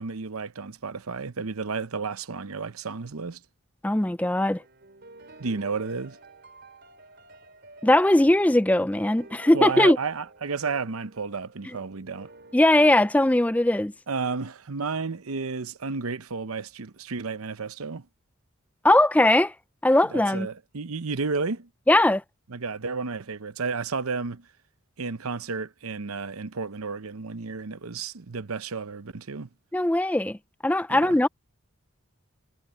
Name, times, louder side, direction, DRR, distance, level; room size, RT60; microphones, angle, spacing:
voice 1, 0.0-3.4 5.4-6.2 9.5-12.3 14.1-18.1 20.1-21.7 22.5-24.4 25.0-29.5 30.9-31.2, right 4 dB, 85° right, 0.8 m, -32 dB
voice 2, 3.8-4.6 7.8-10.0 12.5-13.9 18.8-19.5 19.8-20.5 21.9-22.2 29.7-30.4 30.6-31.3, left 1 dB, 5° left, 0.4 m, -20 dB
sound 1, 4.4-13.1, right 2 dB, 50° right, 4.4 m, -50 dB
head